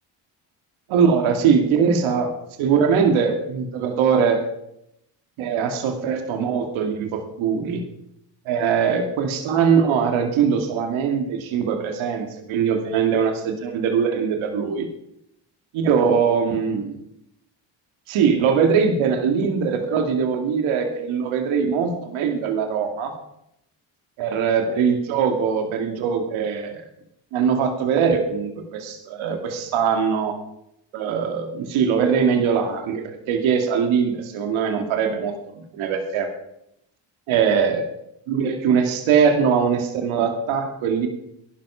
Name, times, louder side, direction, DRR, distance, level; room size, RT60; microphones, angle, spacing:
voice 1, 0.9-2.3 2.6-4.4 5.4-7.8 8.5-14.9 15.7-17.0 18.1-23.1 24.2-26.8 27.3-30.3 30.9-35.3 35.7-36.3 37.3-37.8 38.3-41.1, right 6 dB, 85° right, 4 dB, 2.4 m, -21 dB
16.0 x 11.5 x 5.8 m, 0.79 s
supercardioid pair, 65°, 47 cm